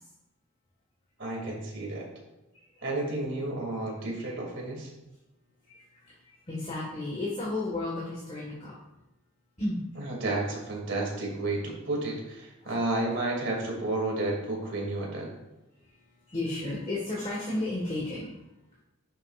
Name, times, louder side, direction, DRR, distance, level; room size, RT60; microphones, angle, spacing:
voice 1, 1.2-2.1 2.8-4.9 10.0-15.3, right 2 dB, 55° right, -2 dB, 2.5 m, -31 dB
voice 2, 6.0-8.7 9.6-9.8 16.3-18.3, left 2 dB, 30° left, -5 dB, 1.6 m, -33 dB
10.0 x 7.0 x 2.5 m, 0.97 s
head